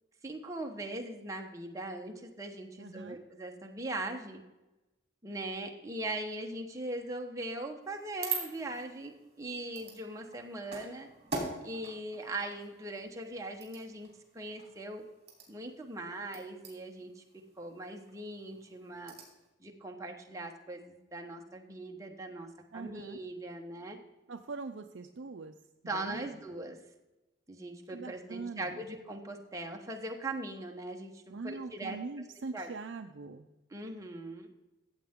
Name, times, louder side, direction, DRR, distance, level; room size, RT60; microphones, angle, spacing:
voice 1, 0.2-4.4 5.2-11.1 11.6-14.1 14.3-15.0 15.5-17.2 17.6-19.1 19.6-24.0 25.9-26.8 27.5-32.0 32.5-32.7 33.7-34.5, right 2 dB, 15° right, 2 dB, 1.1 m, -40 dB
voice 2, 2.8-3.2 22.7-23.2 24.3-25.5 25.9-26.3 27.9-28.7 31.3-33.5, right 4 dB, 65° right, 5 dB, 0.5 m, -42 dB
sound 1, 7.8-19.5, right 4 dB, 30° right, 3.1 m, -44 dB
14.5 x 7.8 x 3.7 m, 1.0 s
head